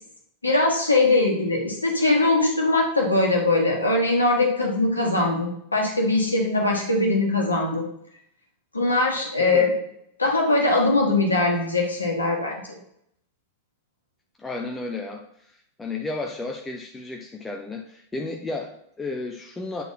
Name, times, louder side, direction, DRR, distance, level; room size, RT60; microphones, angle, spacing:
voice 1, 0.4-7.8 8.7-9.7 10.2-12.6, left 2 dB, 80° left, 0 dB, 1.4 m, -21 dB
voice 2, 14.4-19.8, left 3 dB, 10° left, 1 dB, 0.6 m, -33 dB
8.2 x 4.0 x 4.0 m, 0.74 s
figure-of-eight pair, 90°, 0 cm